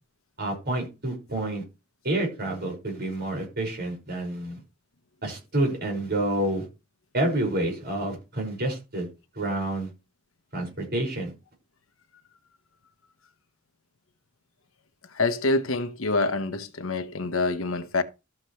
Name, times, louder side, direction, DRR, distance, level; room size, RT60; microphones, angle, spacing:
voice 1, 0.4-1.6 2.0-4.6 5.2-6.7 7.1-9.1 9.4-9.9 10.5-11.3, right 1 dB, 50° right, 5.6 m, -28 dB
voice 2, 15.1-18.0, left 3 dB, 85° left, 1.1 m, -26 dB
13.5 x 7.5 x 3.2 m
head